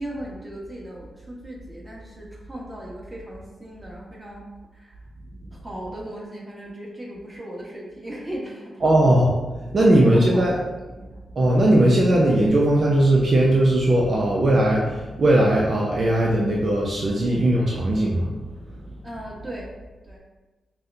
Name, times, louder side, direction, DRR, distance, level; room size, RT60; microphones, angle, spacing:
voice 1, 0.0-4.5 4.7-5.1 5.5-9.0 9.8-11.2 17.1-17.4 19.0-19.7 20.0-20.2, right 1 dB, 20° right, -4 dB, 1.2 m, -37 dB
voice 2, 8.8-9.2 9.7-10.5 11.4-18.4, right 1 dB, 55° right, -3 dB, 0.5 m, -18 dB
5.4 x 2.1 x 2.6 m, 1.2 s
cardioid pair, 55°, 0 cm